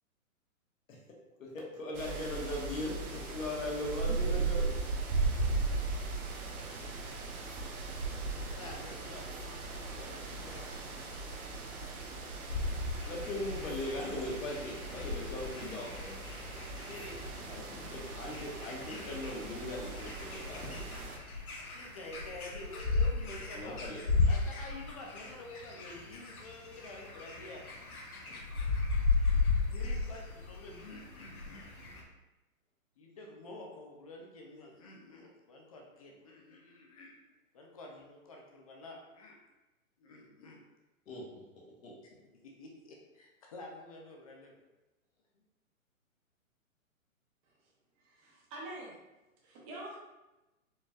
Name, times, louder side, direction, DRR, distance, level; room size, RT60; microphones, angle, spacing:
voice 1, 1.4-3.0 3.3-4.7 13.1-16.2 17.4-20.8 23.5-24.0 41.1-41.9, left 1 dB, 70° left, -3 dB, 1.4 m, -39 dB
sound 1, 1.9-21.2, right 3 dB, 90° right, 0.8 m, -38 dB
voice 2, 8.5-10.7 16.5-17.2 21.6-23.8 24.3-27.6 29.7-32.0 33.0-37.1 37.5-39.4 40.0-40.6 42.4-44.6, left 2 dB, 25° left, 0 dB, 0.4 m, -49 dB
sound 2, 12.5-32.0, left 4 dB, 90° left, 0.9 m, -35 dB
voice 3, 48.0-48.9 49.4-50.0, right 1 dB, 25° right, -4 dB, 0.9 m, -45 dB
4.4 x 3.0 x 2.4 m, 1.0 s
hypercardioid pair, 140°, 42 cm